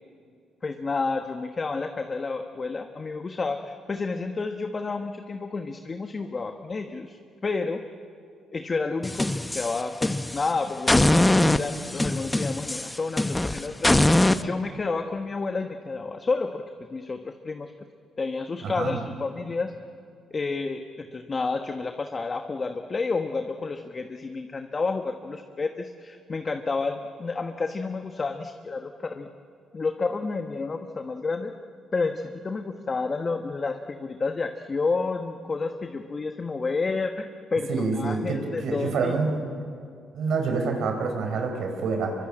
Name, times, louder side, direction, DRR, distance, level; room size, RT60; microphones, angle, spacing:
voice 1, 0.6-7.8 8.5-16.6 16.9-17.7 18.2-19.7 20.3-29.3 29.7-31.5 31.9-39.1, left 4 dB, 35° left, 6 dB, 1.3 m, -30 dB
sound 1, 9.0-10.5 10.9-14.4, left 1 dB, 10° left, 0.9 m, -22 dB
voice 2, 18.6-19.0 37.7-39.4 40.1-42.1, right 4 dB, 70° right, 4 dB, 4.6 m, -27 dB
24.5 x 23.5 x 8.8 m, 2.3 s
cardioid pair, 90°, 0 cm